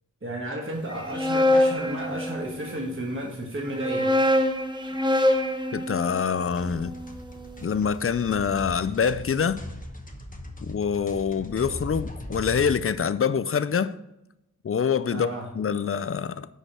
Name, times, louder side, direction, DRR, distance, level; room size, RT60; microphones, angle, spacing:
voice 1, 0.2-4.1 15.1-15.5, right 1 dB, 40° right, 1.4 m, -33 dB
sound 1, 0.9-2.8 3.6-7.7, left 1 dB, 15° right, 0.8 m, -25 dB
voice 2, 5.7-6.9 7.6-9.6 10.6-14.0 14.6-15.3 15.5-16.5, left 6 dB, 45° left, 0.4 m, -25 dB
sound 2, 6.5-12.8, left 1 dB, 25° left, 1.0 m, -39 dB
6.4 x 5.0 x 5.6 m
wide cardioid pair, 55°, 32 cm